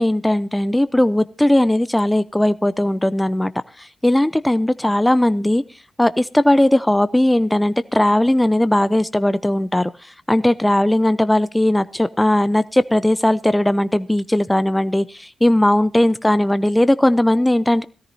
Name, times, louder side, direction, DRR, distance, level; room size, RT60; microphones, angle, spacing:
voice 1, 0.0-3.5 3.8-5.6 6.0-9.9 10.3-17.8, left 1 dB, 10° left, 14 dB, 0.7 m, -18 dB
18.0 x 13.5 x 2.7 m, 0.38 s
hypercardioid pair, 40°, 0 cm